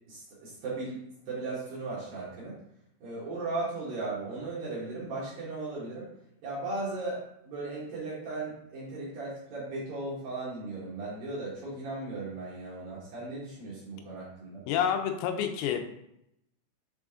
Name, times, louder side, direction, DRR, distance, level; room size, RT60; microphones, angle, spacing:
voice 1, 0.1-2.6 3.0-6.1 6.4-14.6, right 2 dB, 60° right, -8 dB, 2.7 m, -37 dB
voice 2, 14.7-15.8, left 8 dB, 90° left, 6 dB, 3.4 m, -28 dB
7.5 x 3.7 x 3.6 m, 0.80 s
omnidirectional pair, 5.9 m